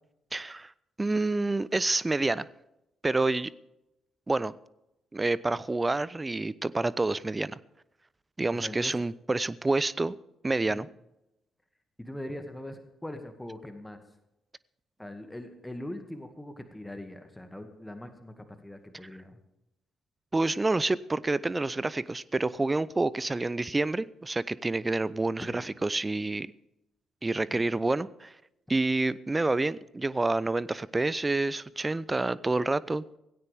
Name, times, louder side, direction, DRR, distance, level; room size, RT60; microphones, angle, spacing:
voice 1, 0.3-0.7 1.0-2.5 3.0-3.5 4.3-4.5 5.1-7.6 8.4-10.1 10.4-10.9 20.3-26.5 27.2-28.3 28.7-33.0, right 2 dB, 20° right, 0.7 m, -28 dB
voice 2, 8.5-9.0 10.7-10.9 12.0-14.0 15.0-19.4 25.4-25.7 27.5-27.6, left 1 dB, 10° left, 2.0 m, -41 dB
17.5 x 16.5 x 3.5 m
figure-of-eight pair, 40°, 0 cm